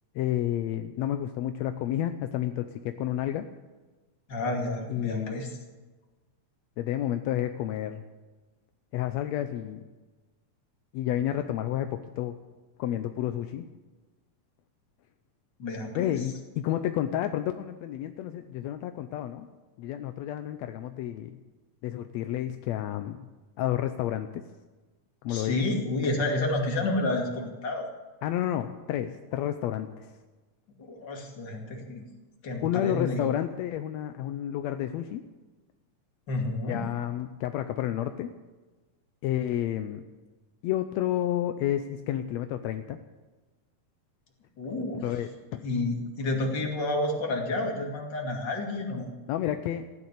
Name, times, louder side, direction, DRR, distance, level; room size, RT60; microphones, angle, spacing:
voice 1, 0.2-3.5 4.9-5.5 6.8-8.0 8.9-9.8 10.9-12.3 12.8-13.7 16.0-19.5 19.8-21.4 21.8-23.3 23.6-24.4 25.2-25.6 28.2-30.1 32.6-35.2 36.7-38.3 39.2-40.0 40.6-43.0 45.0-45.6 49.3-49.9, left 12 dB, 75° left, 9 dB, 1.6 m, -30 dB
voice 2, 4.3-5.5 15.6-16.2 25.3-27.9 30.8-32.0 32.4-33.2 36.3-36.8 44.6-45.0 45.6-49.1, left 2 dB, 35° left, 1 dB, 2.9 m, -30 dB
15.5 x 10.5 x 8.4 m, 1.2 s
omnidirectional pair, 3.7 m